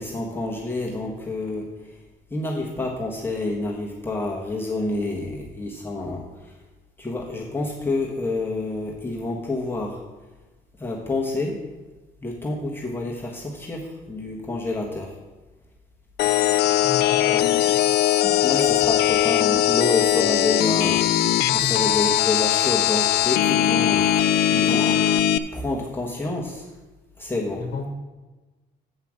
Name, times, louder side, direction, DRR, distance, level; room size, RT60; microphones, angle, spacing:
voice 1, 0.0-1.6 2.3-6.2 7.0-9.9 10.8-11.5 12.2-13.8 14.1-15.1 17.3-17.4 18.4-21.0 21.5-24.1 24.5-25.0 25.5-26.5 27.2-27.6, left 2 dB, 15° left, -2 dB, 1.3 m, -28 dB
sound 1, 16.2-25.4, left 12 dB, 75° left, 0.5 m, -20 dB
voice 2, 16.6-18.5 21.4-21.9 27.5-27.9, left 5 dB, 60° left, 5 dB, 1.3 m, -35 dB
7.7 x 5.7 x 7.3 m, 1.2 s
cardioid pair, 110°, 17 cm